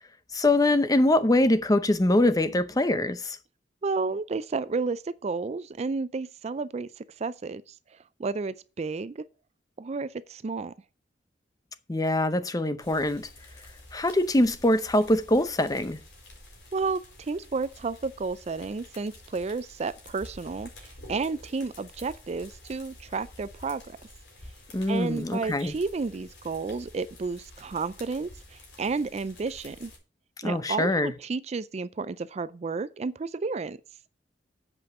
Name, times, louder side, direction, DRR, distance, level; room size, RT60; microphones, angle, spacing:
voice 1, 0.3-3.4 11.9-13.3 13.9-16.0 24.7-25.7 30.4-31.1, left 1 dB, 20° left, 0.6 m, -23 dB
voice 2, 3.8-7.7 8.2-9.2 9.8-10.7 16.7-24.0 24.9-29.9 30.4-33.8, right 4 dB, 35° right, 0.4 m, -32 dB
sound 1, 12.8-30.0, left 1 dB, 90° left, 4.7 m, -50 dB
8.1 x 5.3 x 7.5 m
head